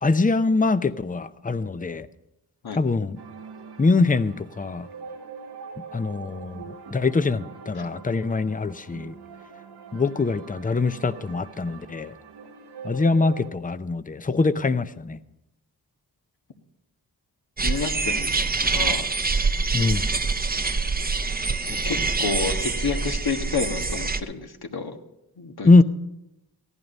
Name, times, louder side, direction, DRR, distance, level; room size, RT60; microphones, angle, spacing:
voice 1, 0.0-2.1 2.8-3.2 3.8-4.9 5.9-9.1 9.9-12.1 12.8-15.2 19.7-20.1 25.6-25.8, left 3 dB, 20° left, 13 dB, 0.6 m, -23 dB
sound 1, 3.2-13.5, right 5 dB, 80° right, 1.1 m, -43 dB
voice 2, 17.6-19.1 21.7-25.0 25.4-25.7, left 5 dB, 70° left, 5 dB, 1.4 m, -30 dB
sound 2, 17.6-24.2, right 4 dB, 25° right, 0.7 m, -25 dB
15.0 x 11.0 x 5.4 m, 0.90 s
cardioid pair, 55°, 39 cm